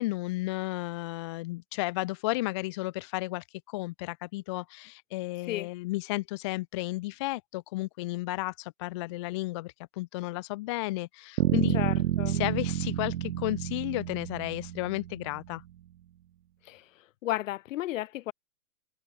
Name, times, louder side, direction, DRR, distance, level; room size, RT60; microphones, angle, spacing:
voice 1, 0.0-11.8 12.3-15.6, left 20 dB, 20° left, 0.4 m, -33 dB
sound 1, 11.4-15.3, right 12 dB, 70° right, 1.4 m, -29 dB
voice 2, 11.7-12.4 16.6-16.9 17.2-18.3, left 15 dB, 55° left, 0.9 m, -33 dB
hypercardioid pair, 140°, 47 cm